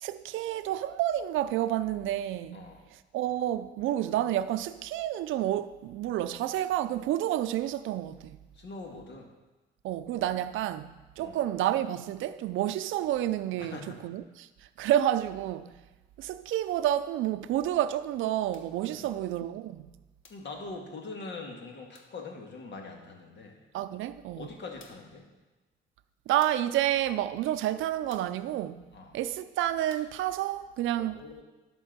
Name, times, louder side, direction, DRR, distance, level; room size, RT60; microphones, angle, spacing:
voice 1, 0.0-2.6 3.1-8.4 9.8-14.5 14.8-15.7 16.2-19.8 23.7-24.5 26.3-28.9 29.1-31.2, right 12 dB, 80° right, 0.5 m, -29 dB
voice 2, 2.5-2.8 8.5-9.3 11.2-11.4 13.6-14.0 18.9-19.1 20.3-23.6 24.3-25.2 28.9-29.2 31.0-31.4, left 3 dB, 60° left, 1.8 m, -43 dB
sound 1, 18.5-18.8 20.2-20.5 21.9-22.2 24.0-24.1 24.8-25.2 26.4-26.8 28.1-28.4 29.9-30.2, left 4 dB, 80° left, 1.1 m, -57 dB
11.0 x 4.4 x 6.6 m
cardioid pair, 90°, 20 cm